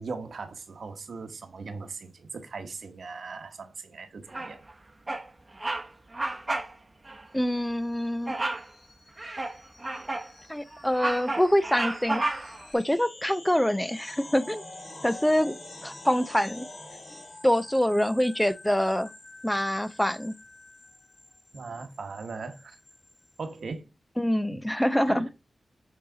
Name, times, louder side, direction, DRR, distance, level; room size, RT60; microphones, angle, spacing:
voice 1, 0.0-4.6 21.5-22.8 23.4-23.9 24.5-24.6 25.1-25.3, right 4 dB, 75° right, 1.1 m, -39 dB
Bird vocalization bird call bird song, 4.3-4.7 5.1-5.3 5.6-5.9 6.1-6.7 7.1-7.2 8.3-8.7 9.2-10.3 10.7-12.7, right 2 dB, 25° right, 0.9 m, -31 dB
voice 2, 7.3-8.3 10.5-12.2 12.7-14.6 15.0-15.6 15.8-16.7 17.4-19.1 19.4-20.3 24.2-25.3, equal, 5° left, 0.4 m, -25 dB
sound 1, 7.4-23.6, left 2 dB, 45° left, 3.3 m, -48 dB
8.2 x 4.0 x 3.8 m
wide cardioid pair, 105°, 0 cm